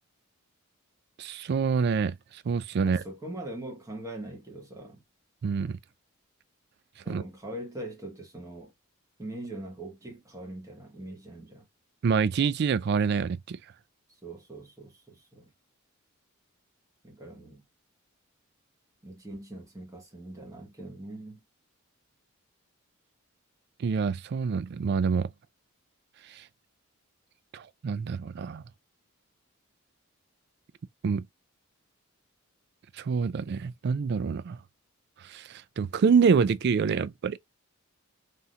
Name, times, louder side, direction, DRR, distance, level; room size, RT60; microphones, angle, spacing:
voice 1, 1.2-3.0 5.4-5.8 7.1-7.2 12.0-13.6 23.8-25.3 26.3-26.4 27.5-28.6 31.0-31.2 33.0-34.6 35.2-37.4, right 5 dB, 50° right, 0.3 m, -26 dB
voice 2, 2.8-5.0 7.0-8.7 9.2-11.7 14.1-15.5 17.0-17.6 19.0-21.4, right 1 dB, 15° right, 1.2 m, -42 dB
3.5 x 2.8 x 2.3 m
head